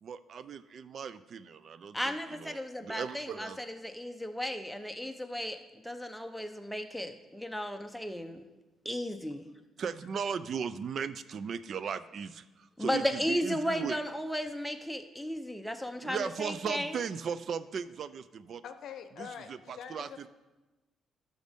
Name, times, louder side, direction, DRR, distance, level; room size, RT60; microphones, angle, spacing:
voice 1, 0.0-3.6 9.8-14.0 16.0-18.6 19.2-20.3, right 6 dB, 55° right, 14 dB, 0.4 m, -37 dB
voice 2, 1.9-8.4 8.8-9.5 12.8-17.0, equal, ahead, 6 dB, 0.7 m, -35 dB
voice 3, 18.6-20.3, left 8 dB, 70° left, 10 dB, 0.6 m, -45 dB
11.5 x 6.3 x 3.5 m, 1.1 s
cardioid pair, 90°, 0 cm